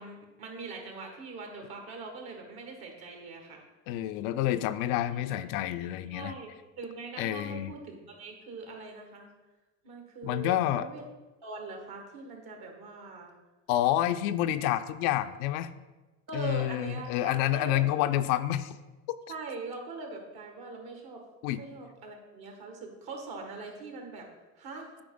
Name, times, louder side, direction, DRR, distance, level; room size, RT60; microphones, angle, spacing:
voice 1, 0.0-3.6 5.1-5.2 6.1-9.3 9.8-11.0 11.4-13.3 16.3-18.0 19.3-21.2 21.5-24.3 24.5-24.9, right 3 dB, 55° right, 2 dB, 1.8 m, -42 dB
voice 2, 3.9-6.3 7.2-7.7 10.2-10.9 13.7-15.7 16.3-18.8 21.4-21.6, left 13 dB, 70° left, 11 dB, 0.5 m, -28 dB
8.7 x 4.4 x 3.8 m, 1.2 s
hypercardioid pair, 80°, 44 cm